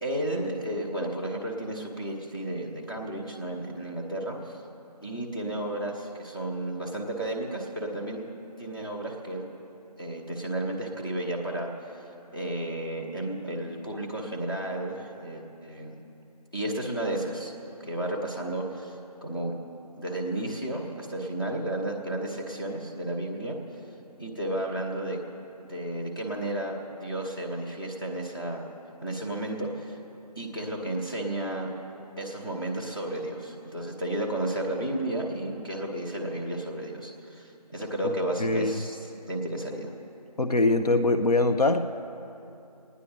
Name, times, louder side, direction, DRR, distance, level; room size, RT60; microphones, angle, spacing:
voice 1, 0.0-4.6 5.0-8.2 8.6-9.5 10.0-11.7 12.3-16.0 16.5-17.5 17.8-19.5 20.0-23.6 24.2-25.2 25.7-28.7 29.0-30.0 30.4-31.7 32.2-39.9, right 1 dB, 35° left, -3 dB, 1.0 m, -32 dB
voice 2, 38.4-38.8 40.4-41.8, left 2 dB, 65° left, 6 dB, 0.6 m, -23 dB
25.5 x 9.6 x 4.0 m, 2.8 s
figure-of-eight pair, 175°, 21 cm